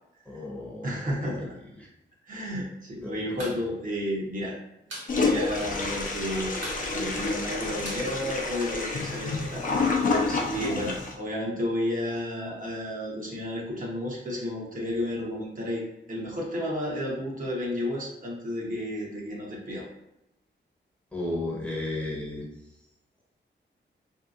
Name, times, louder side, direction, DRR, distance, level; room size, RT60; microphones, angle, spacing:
voice 1, 0.3-1.1 3.0-3.2 21.1-22.5, left 2 dB, 5° left, -4 dB, 0.8 m, -33 dB
voice 2, 0.8-1.5 2.3-4.6 5.1-6.6 6.9-9.6 9.9-19.9, left 1 dB, 45° right, -3 dB, 0.8 m, -32 dB
sound 1, 3.4-3.6 3.9-4.0 4.3-5.1 5.5-5.6 5.8-6.2 6.6-8.9, right 1 dB, 80° right, 1.2 m, -41 dB
Toilet flush, 5.1-11.1, left 3 dB, 45° left, 0.5 m, -28 dB
3.3 x 2.7 x 2.4 m, 0.87 s
wide cardioid pair, 125°, 20 cm